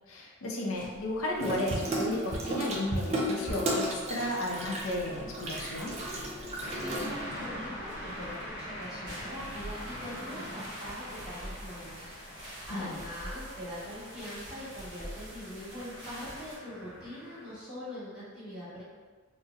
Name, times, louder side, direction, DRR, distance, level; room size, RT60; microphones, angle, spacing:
voice 1, 0.1-6.0 12.7-13.0, left 1 dB, 75° left, -1 dB, 0.6 m, -34 dB
sound 1, 0.7-16.6, equal, 50° right, 1.5 m, -48 dB
Water tap faucet / Sink (filling or washing), 1.4-7.5, right 1 dB, 30° right, 0.4 m, -34 dB
voice 2, 6.5-12.1 12.6-18.8, equal, 5° right, -13 dB, 1.3 m, -43 dB
sound 2, 6.6-17.5, equal, 30° left, 0.9 m, -44 dB
3.8 x 2.0 x 2.4 m, 1.4 s
head